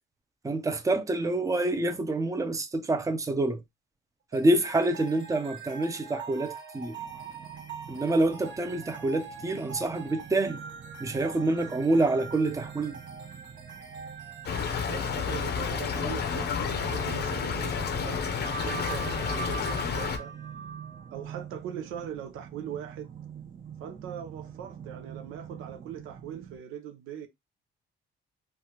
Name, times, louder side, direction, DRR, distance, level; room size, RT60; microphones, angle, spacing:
voice 1, 0.4-3.6 4.3-7.0 7.9-10.6 11.0-13.0, right 2 dB, 15° right, 0.6 m, -27 dB
sound 1, 4.3-21.5, right 6 dB, 65° right, 1.1 m, -43 dB
sound 2, 6.9-26.6, right 8 dB, 40° right, 0.8 m, -46 dB
Stream / Trickle dribble, 14.4-20.2, left 7 dB, 60° left, 0.6 m, -30 dB
voice 2, 14.9-18.2 18.6-20.3 21.1-23.1 23.8-27.3, right 9 dB, 90° right, 0.6 m, -40 dB
3.2 x 2.4 x 2.8 m
cardioid pair, 90°, 20 cm